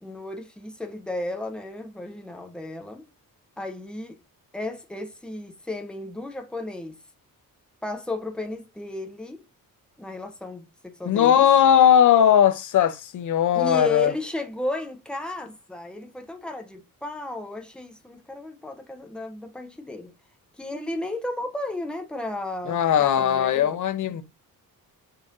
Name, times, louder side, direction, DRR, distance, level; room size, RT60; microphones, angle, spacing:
voice 1, 0.0-3.1 3.6-4.2 4.5-6.9 7.8-9.4 10.0-11.5 13.5-20.1 20.6-24.2, left 2 dB, 5° left, 0.5 m, -34 dB
voice 2, 11.1-14.1 22.7-24.2, left 9 dB, 60° left, 0.6 m, -19 dB
5.2 x 2.8 x 2.4 m
wide cardioid pair, 175°, 35 cm